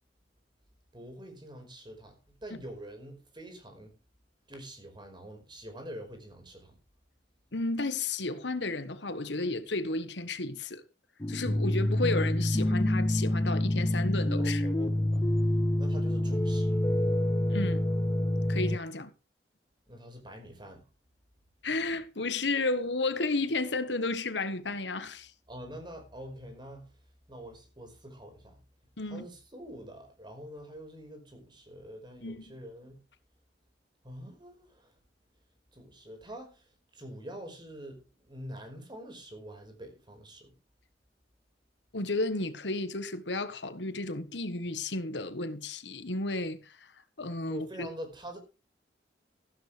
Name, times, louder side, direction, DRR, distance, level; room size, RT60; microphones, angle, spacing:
voice 1, 0.9-3.9 4.5-6.8 14.4-15.3 15.8-16.8 19.9-20.8 25.5-26.9 27.3-28.6 29.1-33.0 34.0-34.9 35.7-36.7 36.9-40.6 47.5-48.4, equal, 25° right, 5.2 m, -45 dB
voice 2, 7.5-10.8 11.3-14.7 17.5-17.9 18.5-19.1 21.6-25.3 29.0-29.3 32.2-32.5 41.9-46.9 47.2-47.9, left 2 dB, 80° left, 1.5 m, -32 dB
sound 1, 11.2-18.8, left 1 dB, 20° left, 0.7 m, -27 dB
15.0 x 12.5 x 3.5 m
head